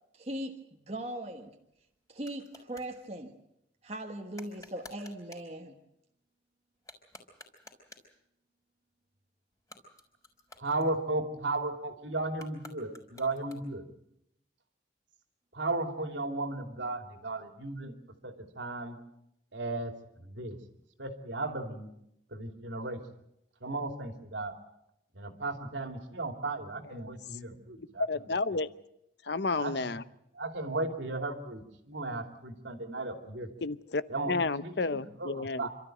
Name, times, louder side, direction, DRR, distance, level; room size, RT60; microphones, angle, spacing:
voice 1, 0.1-1.5 2.1-3.4 3.8-5.8, right 1 dB, 35° right, 3 dB, 1.4 m, -39 dB
sound 1, 1.3-3.0 4.3-5.5 6.7-8.2 9.5-11.4 12.3-13.9, left 2 dB, 15° left, 4.2 m, -54 dB
voice 2, 10.6-13.8 15.5-18.0 18.2-19.0 19.5-20.6 21.0-21.9 22.3-23.0 23.6-24.5 25.1-28.4 29.6-30.0 30.3-33.5 34.1-35.7, right 2 dB, 75° right, 6 dB, 2.8 m, -35 dB
voice 3, 28.1-28.7 29.3-30.0 33.6-34.0 34.3-35.6, left 3 dB, 60° left, 15 dB, 0.8 m, -31 dB
27.5 x 13.0 x 9.2 m, 0.81 s
head